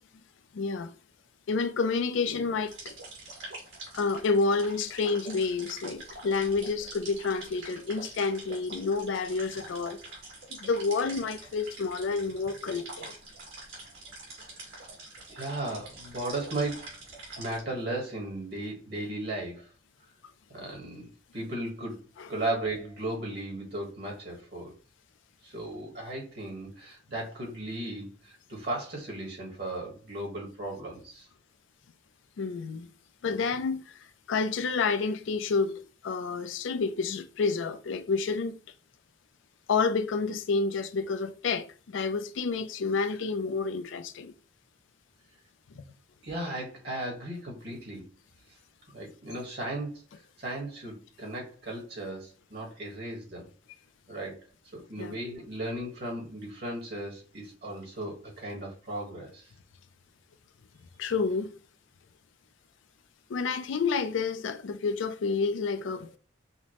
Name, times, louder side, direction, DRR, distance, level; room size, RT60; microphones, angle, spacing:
voice 1, 0.5-0.9 1.5-3.0 3.9-10.0 10.5-13.1 22.2-22.3 32.4-32.9 33.2-33.8 34.3-35.7 36.0-38.6 39.7-44.3 45.7-45.8 55.0-55.1 61.0-61.5 63.3-66.2, left 4 dB, 75° left, 0.4 m, -29 dB
sound 1, 2.7-17.6, right 2 dB, 80° right, 2.0 m, -45 dB
voice 2, 15.3-16.9 17.3-19.7 20.5-22.0 22.3-24.7 25.4-31.3 46.2-48.0 48.9-50.0 50.4-53.5 54.1-54.4 54.7-59.5, right 1 dB, 55° right, 1.5 m, -36 dB
5.6 x 2.1 x 2.9 m
head